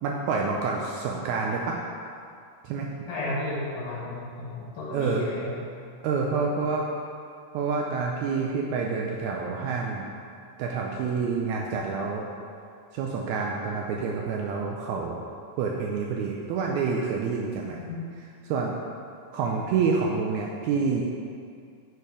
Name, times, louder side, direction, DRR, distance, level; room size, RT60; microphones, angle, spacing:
voice 1, 0.0-1.8 2.6-2.9 4.9-5.3 6.0-6.9 7.5-10.1 10.6-12.3 12.9-15.2 15.6-17.8 18.5-18.7 19.3-21.0, right 5 dB, 90° right, -1 dB, 1.6 m, -28 dB
voice 2, 3.1-5.6 17.8-18.0, left 2 dB, 70° left, -5 dB, 2.5 m, -33 dB
5.2 x 4.5 x 4.8 m, 2.3 s
omnidirectional pair, 3.8 m